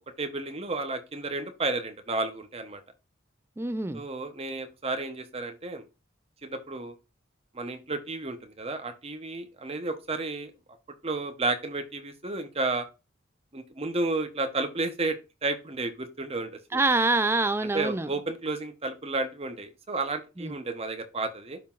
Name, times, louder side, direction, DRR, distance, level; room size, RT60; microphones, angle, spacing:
voice 1, 0.2-2.8 3.9-5.8 6.4-6.9 7.5-10.5 11.0-12.9 13.5-15.2 15.4-16.8 17.7-21.6, right 2 dB, 30° right, 0.9 m, -32 dB
voice 2, 3.6-4.0 16.7-18.1 20.4-20.5, right 2 dB, 10° right, 0.4 m, -25 dB
11.5 x 3.8 x 2.5 m
head